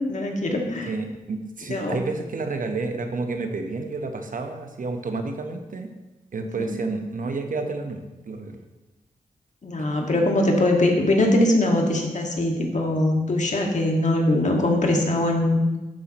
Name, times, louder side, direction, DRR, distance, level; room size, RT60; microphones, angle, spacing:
voice 1, 0.0-0.9 1.7-2.0 6.6-6.8 9.6-15.6, left 1 dB, 55° left, 1 dB, 1.9 m, -22 dB
voice 2, 0.9-5.9 6.3-8.6 10.1-10.2, right 3 dB, 65° right, 5 dB, 1.1 m, -30 dB
11.5 x 8.2 x 3.0 m, 1.1 s
cardioid pair, 45°, 15 cm